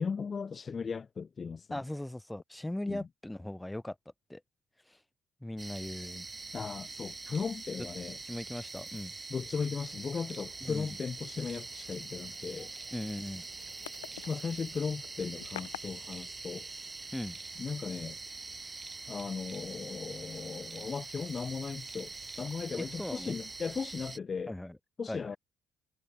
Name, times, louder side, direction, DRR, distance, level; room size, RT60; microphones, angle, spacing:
voice 1, 0.0-1.8 2.9-3.1 6.5-8.2 9.3-12.7 14.1-16.7 17.6-18.2 19.1-24.5 25.0-25.4, left 5 dB, 40° left, 0.5 m, -37 dB
voice 2, 1.7-4.0 4.3-4.4 4.9-5.0 5.4-6.3 8.2-9.1 10.6-11.0 12.9-13.5 17.1-17.4 22.8-23.3 24.5-24.8 25.1-25.4, left 1 dB, 10° left, 1.8 m, -39 dB
sound 1, 5.6-24.2, right 3 dB, 25° right, 0.5 m, -44 dB
sound 2, 9.7-15.8, left 17 dB, 85° left, 1.1 m, -51 dB
hypercardioid pair, 50°, 0 cm